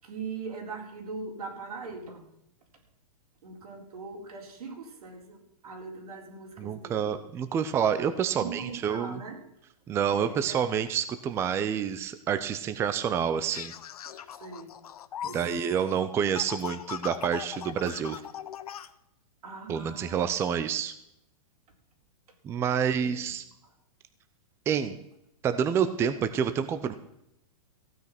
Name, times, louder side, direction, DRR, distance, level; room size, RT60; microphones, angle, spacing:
voice 1, 0.0-2.3 3.4-7.2 8.3-9.4 10.1-10.6 14.4-14.7 15.2-16.0 19.4-20.3 22.7-23.1 23.6-23.7, right 4 dB, 85° right, 2 dB, 4.2 m, -41 dB
voice 2, 6.6-9.2 9.9-13.7 15.3-18.2 19.7-20.9 22.4-23.4 24.7-24.9 25.4-26.9, right 8 dB, 15° right, 11 dB, 0.6 m, -28 dB
sound 1, 13.5-18.9, left 10 dB, 80° left, 0.9 m, -40 dB
15.5 x 9.3 x 5.9 m, 0.79 s
hypercardioid pair, 155°, 19 cm